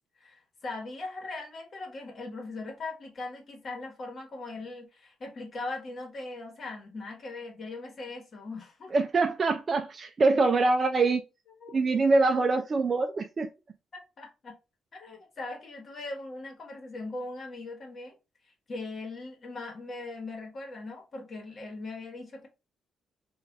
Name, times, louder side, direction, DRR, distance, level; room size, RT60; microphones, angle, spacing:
voice 1, 0.2-8.9 11.6-11.8 14.2-14.5 14.9-18.1 18.7-22.5, left 2 dB, 45° left, 1.1 m, -40 dB
voice 2, 8.9-11.2 11.7-13.5, right 3 dB, 40° right, 0.3 m, -24 dB
3.2 x 2.4 x 2.4 m
cardioid pair, 90°, 0 cm